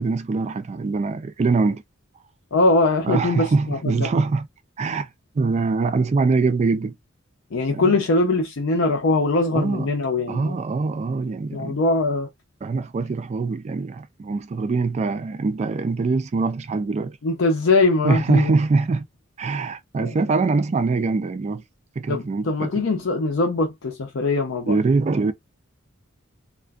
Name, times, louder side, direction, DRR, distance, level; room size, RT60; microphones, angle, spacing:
voice 1, 0.0-1.8 3.0-4.5 4.8-5.1 5.4-7.0 7.7-8.0 9.5-9.9 10.3-11.8 12.6-17.2 18.0-19.1 19.4-21.6 22.0-22.7 24.7-25.3, right 3 dB, 35° right, 0.3 m, -23 dB
voice 2, 2.5-4.1 7.5-10.5 11.5-12.3 17.2-18.5 20.0-20.1 22.1-24.8, left 2 dB, 65° left, 0.5 m, -22 dB
2.4 x 2.1 x 2.3 m
head